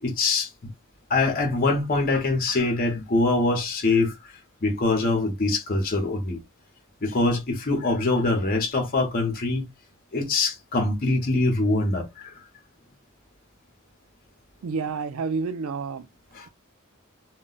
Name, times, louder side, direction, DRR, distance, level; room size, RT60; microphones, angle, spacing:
voice 1, 0.0-0.5 1.1-4.1 4.6-6.4 7.0-9.6 10.1-12.3 16.3-16.5, left 2 dB, 45° left, 0.8 m, -23 dB
voice 2, 14.6-16.1, right 4 dB, 90° right, 0.4 m, -29 dB
2.3 x 2.1 x 3.8 m
head